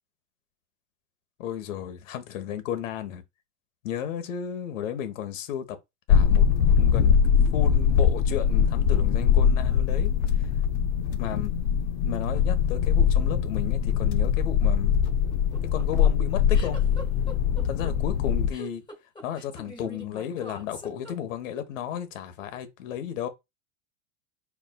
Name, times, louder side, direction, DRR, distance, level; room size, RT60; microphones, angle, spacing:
voice 1, 1.4-3.2 3.8-5.8 6.1-6.4 6.7-10.1 10.4-10.5 11.2-11.5 12.0-15.0 15.7-16.8 17.6-18.8 19.2-23.3, left 9 dB, 80° left, 1.4 m, -33 dB
sound 1, 6.1-18.5, left 7 dB, 55° left, 0.8 m, -22 dB
sound 2, 15.3-21.6, left 2 dB, 10° left, 2.1 m, -43 dB
4.8 x 4.6 x 2.3 m
supercardioid pair, 120°, 38 cm